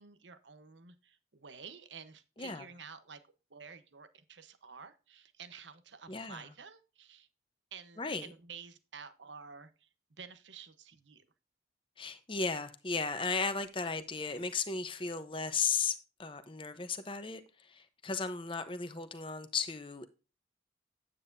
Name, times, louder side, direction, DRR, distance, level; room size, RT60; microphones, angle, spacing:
voice 1, 0.0-3.2 3.5-7.3 7.7-9.9 10.2-11.2, right 6 dB, 80° right, 1.1 m, -51 dB
voice 2, 6.1-6.4 8.0-8.3 12.0-17.4 17.7-20.1, left 5 dB, 30° left, 0.9 m, -35 dB
9.4 x 8.5 x 2.7 m
head